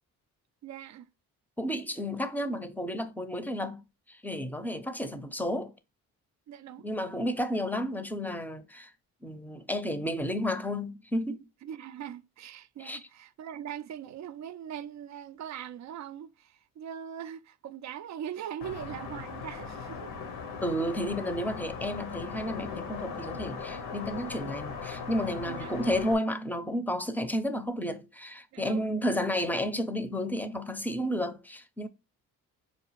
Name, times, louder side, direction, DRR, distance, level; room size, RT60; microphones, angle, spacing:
voice 1, 0.6-1.1 6.5-6.9 11.6-20.1 21.1-21.2 25.5-25.8 28.5-29.2, right 9 dB, 45° right, 0.5 m, -41 dB
voice 2, 1.6-3.8 4.1-5.7 6.8-8.9 9.2-11.4 12.8-13.0 20.6-31.9, equal, 5° left, 0.6 m, -32 dB
sound 1, 18.6-26.1, left 5 dB, 70° left, 0.8 m, -39 dB
4.8 x 2.4 x 3.0 m
hypercardioid pair, 45°, 41 cm